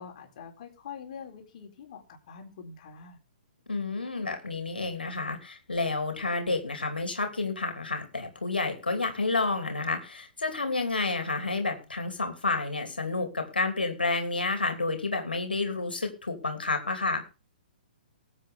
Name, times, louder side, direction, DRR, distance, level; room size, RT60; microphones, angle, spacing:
voice 1, 0.0-3.2, left 6 dB, 50° left, 3 dB, 3.9 m, -45 dB
voice 2, 3.7-17.2, left 3 dB, 80° left, 5 dB, 2.9 m, -30 dB
20.0 x 8.2 x 3.6 m, 0.32 s
figure-of-eight pair, 120°, 5 cm